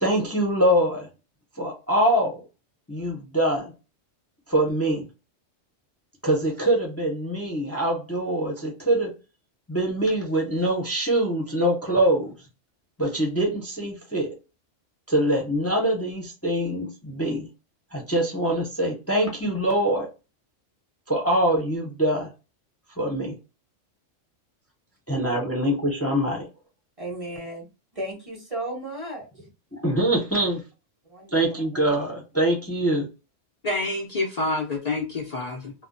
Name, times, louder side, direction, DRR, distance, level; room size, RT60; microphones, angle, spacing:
voice 1, 0.0-1.1 1.6-2.4 2.9-3.7 4.5-5.1 6.2-9.1 9.7-12.3 13.0-14.3 15.1-17.5 17.9-20.1 21.1-22.3 23.0-23.4 25.1-26.5 29.7-30.6 31.3-33.1, right 1 dB, 20° left, 0.4 m, -24 dB
voice 2, 27.0-27.6 27.9-29.3 31.1-31.9, right 1 dB, 35° right, 0.7 m, -35 dB
voice 3, 33.6-35.7, left 2 dB, 85° left, 0.3 m, -27 dB
2.2 x 2.1 x 3.8 m
omnidirectional pair, 1.3 m